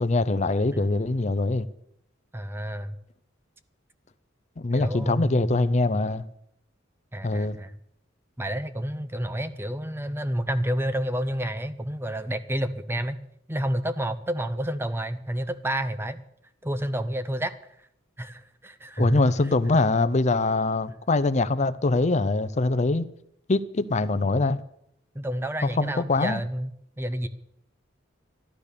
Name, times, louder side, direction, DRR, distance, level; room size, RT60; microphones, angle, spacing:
voice 1, 0.0-1.7 4.6-6.2 7.2-7.6 19.0-23.1 23.5-24.6 25.8-26.4, left 2 dB, 35° left, 0.5 m, -23 dB
voice 2, 2.3-3.0 4.7-6.0 7.1-7.8 8.4-13.2 13.5-16.2 16.6-17.5 18.2-19.2 25.1-27.3, right 1 dB, 10° right, 0.7 m, -30 dB
13.5 x 12.0 x 6.8 m
head